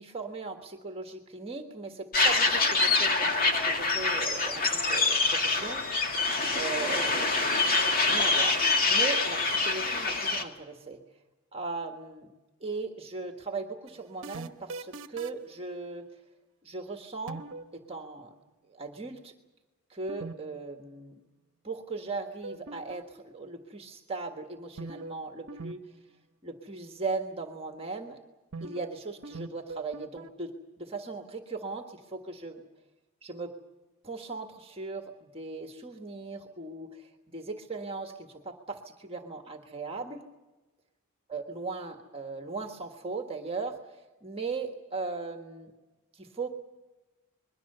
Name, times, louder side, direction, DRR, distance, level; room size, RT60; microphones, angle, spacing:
voice 1, 0.0-6.1 6.5-8.6 8.9-11.0 11.5-12.3 12.6-16.1 16.6-17.4 17.7-18.3 18.7-19.3 19.9-21.2 21.6-25.8 26.4-28.2 28.6-32.6 33.2-33.5 34.0-40.2 41.3-45.7 46.1-46.5, right 3 dB, 25° right, 4 dB, 1.5 m, -38 dB
sound 1, 2.1-10.4, left 3 dB, 45° left, 2.2 m, -25 dB
sound 2, 13.9-15.5 17.3-17.7 20.1-20.3 20.6-20.7 22.4-23.2 24.8-25.2 25.5-25.7 26.0-26.1 28.5-28.9 29.2-30.3, right 3 dB, 65° right, 1.0 m, -40 dB
26.0 x 22.0 x 6.8 m, 1.1 s
head